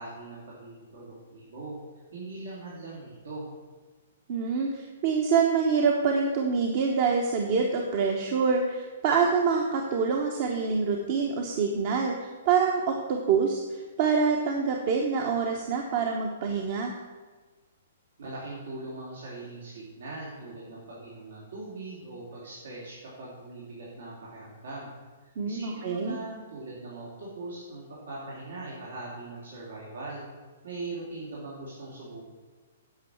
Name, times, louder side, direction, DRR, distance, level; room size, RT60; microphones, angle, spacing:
voice 1, 0.0-1.7 2.1-3.5 18.2-24.9 25.2-30.2 30.6-32.3, right 2 dB, 85° right, -6 dB, 3.3 m, -41 dB
voice 2, 4.3-16.9 25.4-26.2, right 5 dB, 45° right, 2 dB, 1.1 m, -26 dB
9.5 x 5.5 x 7.2 m, 1.3 s
hypercardioid pair, 150°, 0 cm